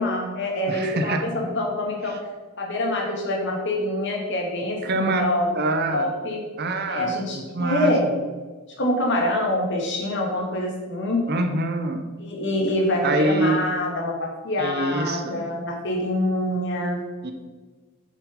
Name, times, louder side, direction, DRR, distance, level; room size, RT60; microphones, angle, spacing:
voice 1, 0.0-2.2 2.6-5.5 5.9-6.4 6.9-8.0 8.8-11.3 12.2-17.0, left 1 dB, 55° left, 0 dB, 2.4 m, -25 dB
voice 2, 0.7-1.3 2.1-2.2 4.8-5.3 5.5-6.1 6.6-8.1 11.3-12.0 13.0-13.6 14.6-15.5 17.2-17.3, right 2 dB, 50° right, 5 dB, 0.9 m, -25 dB
8.0 x 7.3 x 5.4 m, 1.3 s
head